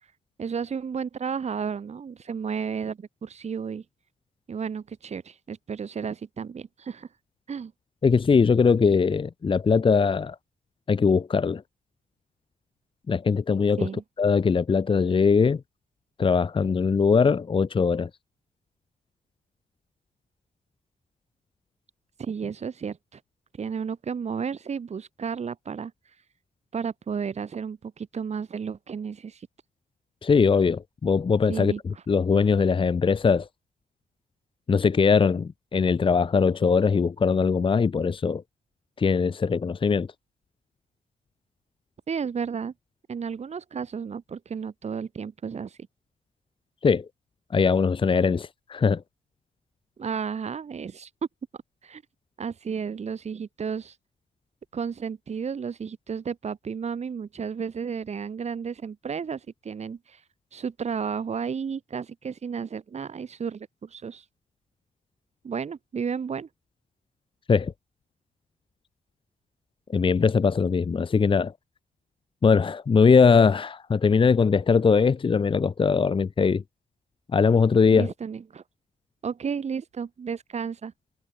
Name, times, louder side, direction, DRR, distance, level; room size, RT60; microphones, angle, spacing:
voice 1, 0.4-3.8 4.5-7.1 7.5-7.7 13.8-14.0 22.2-23.2 23.6-25.9 26.7-29.5 31.5-32.0 42.1-42.7 43.1-45.8 50.0-51.1 51.5-52.0 52.4-54.0 54.7-60.2 60.5-64.2 65.4-66.5 77.9-78.6 79.2-80.9, right 6 dB, 45° right, 2.7 m, -33 dB
voice 2, 8.0-10.4 10.9-11.6 13.1-13.9 14.2-15.6 16.2-18.1 30.2-33.5 34.7-38.4 39.0-40.1 46.8-47.1 47.5-49.0 67.5-67.7 69.9-71.5 72.4-76.6 77.3-78.1, left 5 dB, 35° left, 1.0 m, -21 dB
cardioid pair, 95°, 15 cm